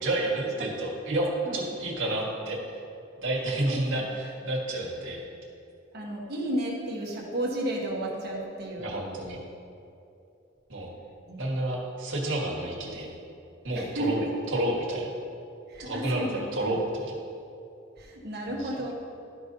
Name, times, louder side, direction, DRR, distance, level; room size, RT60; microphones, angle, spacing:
voice 1, 0.0-2.6 3.2-5.3 8.8-9.4 10.7-10.9 11.4-13.1 13.6-14.3 14.5-15.1 15.8-17.1 18.6-18.7, right 1 dB, 75° right, -3 dB, 1.6 m, -30 dB
voice 2, 3.7-4.1 5.9-8.9 11.3-11.4 13.7-14.3 15.7-16.4 18.0-19.0, right 1 dB, 55° right, -2 dB, 1.3 m, -33 dB
12.5 x 5.3 x 2.7 m, 2.7 s
head